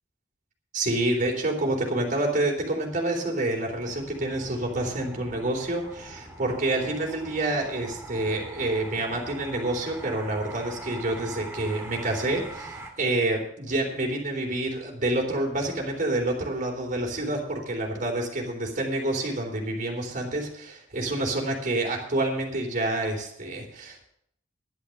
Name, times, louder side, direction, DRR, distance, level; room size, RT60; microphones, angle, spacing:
voice 1, 0.7-24.0, right 2 dB, 45° right, 1 dB, 3.7 m, -28 dB
sound 1, 3.7-12.9, right 2 dB, 15° right, 2.4 m, -42 dB
11.0 x 10.5 x 6.6 m, 0.70 s
head